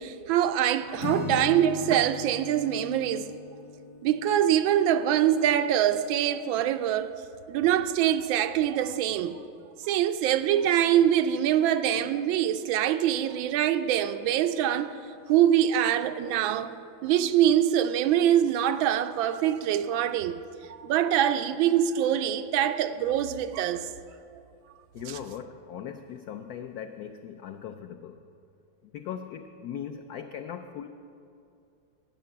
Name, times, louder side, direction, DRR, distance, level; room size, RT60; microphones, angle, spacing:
voice 1, 0.0-3.3 4.0-7.1 7.5-9.4 9.8-15.0 15.3-16.8 17.0-20.4 20.7-23.9 25.1-25.2, right 10 dB, 80° right, 9 dB, 1.3 m, -24 dB
Acoustic guitar / Strum, 1.0-4.9, left 5 dB, 55° left, 1.1 m, -38 dB
voice 2, 24.9-28.2 28.8-30.9, left 8 dB, 85° left, 7 dB, 0.8 m, -39 dB
11.5 x 9.6 x 7.1 m, 2.6 s
omnidirectional pair, 2.2 m